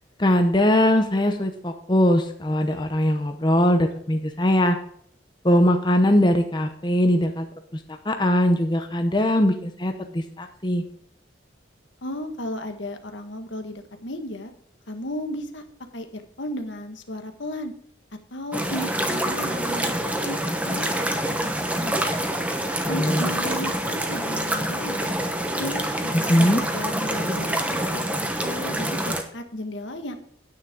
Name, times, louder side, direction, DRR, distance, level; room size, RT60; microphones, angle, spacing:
voice 1, 0.2-4.8 5.4-7.5 7.7-10.8 22.8-23.2 26.1-26.6, left 1 dB, 25° left, 5 dB, 0.8 m, -21 dB
voice 2, 12.0-14.5 14.9-15.6 15.9-17.7 18.1-19.9 20.2-21.4 21.8-22.0 22.9-25.1 25.6-30.2, left 1 dB, 75° left, 6 dB, 1.6 m, -34 dB
sound 1, 18.5-29.2, right 1 dB, 5° right, 1.0 m, -26 dB
9.6 x 9.5 x 3.7 m, 0.66 s
head